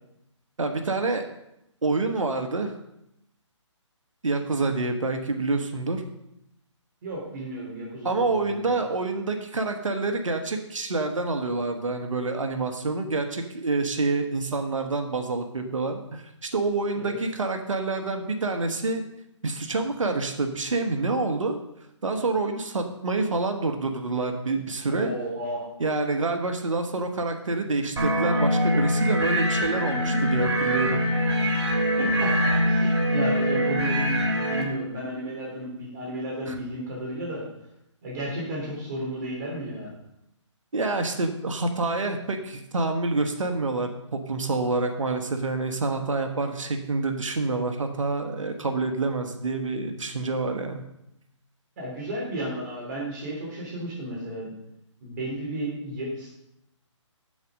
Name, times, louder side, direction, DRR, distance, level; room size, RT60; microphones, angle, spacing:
voice 1, 0.6-1.2 1.8-2.7 4.2-6.0 8.0-19.0 19.4-21.6 22.0-25.1 25.8-31.0 36.5-36.6 40.7-50.8, right 3 dB, 85° right, 5 dB, 1.3 m, -27 dB
voice 2, 7.0-8.7 17.0-17.2 24.9-25.6 32.0-37.4 38.0-39.9 51.8-54.5 55.0-56.3, right 1 dB, 35° right, -4 dB, 3.5 m, -33 dB
sound 1, 28.0-34.6, equal, 60° right, 2.6 m, -23 dB
8.0 x 7.5 x 5.1 m, 0.83 s
hypercardioid pair, 155°, 16 cm